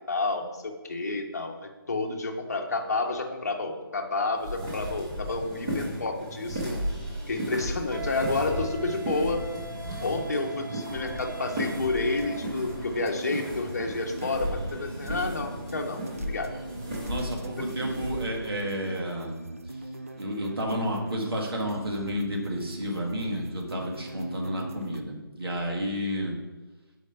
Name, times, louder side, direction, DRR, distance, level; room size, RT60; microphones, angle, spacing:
voice 1, 0.1-6.7 7.3-9.5 10.0-16.0 16.3-16.5 17.6-17.7, left 3 dB, 45° left, 4 dB, 0.8 m, -30 dB
sound 1, 4.3-18.3, equal, 10° right, 0.7 m, -35 dB
Wind instrument woodwind instrument, 7.9-12.4, right 6 dB, 60° right, 0.9 m, -42 dB
sound 2, 11.1-25.0, right 1 dB, 40° right, 0.3 m, -41 dB
voice 2, 17.1-19.4 20.2-26.4, equal, 85° right, -1 dB, 1.7 m, -31 dB
6.7 x 4.9 x 3.4 m, 1.1 s
hypercardioid pair, 180°, 12 cm